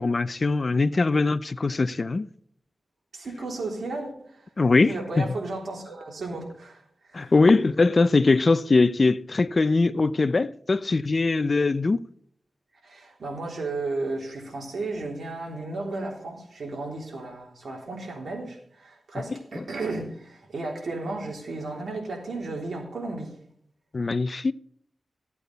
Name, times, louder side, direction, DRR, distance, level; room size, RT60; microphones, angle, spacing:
voice 1, 0.0-2.3 4.6-5.3 7.1-12.0 19.3-19.6 23.9-24.5, left 3 dB, 45° left, 0.5 m, -22 dB
voice 2, 3.1-4.5 4.8-6.8 7.1-7.3 12.8-23.4, right 2 dB, 75° right, 3.5 m, -34 dB
15.0 x 8.4 x 4.1 m
cardioid pair, 65°, 0 cm